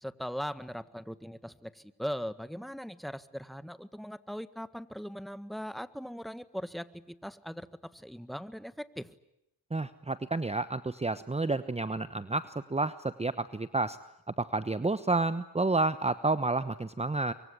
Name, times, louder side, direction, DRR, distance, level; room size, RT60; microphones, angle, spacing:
voice 1, 0.0-9.1, equal, ahead, 14 dB, 1.6 m, -40 dB
voice 2, 9.7-14.0 14.4-17.3, right 3 dB, 15° right, 13 dB, 1.1 m, -30 dB
24.0 x 24.0 x 10.0 m, 0.84 s
supercardioid pair, 50°, 41 cm